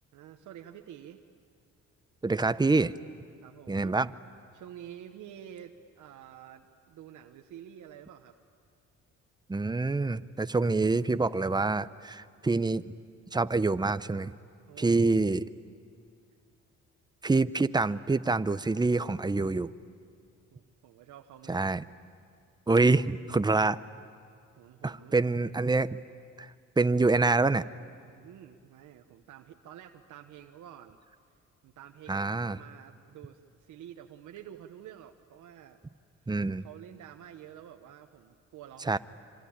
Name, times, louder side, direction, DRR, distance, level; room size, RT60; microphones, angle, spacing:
voice 1, 0.1-1.2 3.4-4.0 4.5-8.4 14.7-15.0 20.5-21.7 24.6-25.5 28.1-31.0 31.6-35.8 36.6-39.0, right 10 dB, 80° right, 4 dB, 1.1 m, -49 dB
voice 2, 2.2-2.9 3.7-4.1 9.5-12.9 13.3-14.3 14.8-15.4 17.2-19.7 21.5-21.8 22.7-23.8 24.8-26.0 26.4-26.5 26.8-27.6 32.1-32.6 36.3-36.7 38.9-39.0, right 3 dB, 15° right, 14 dB, 0.7 m, -26 dB
26.0 x 26.0 x 8.8 m, 2.2 s
cardioid pair, 90°, 30 cm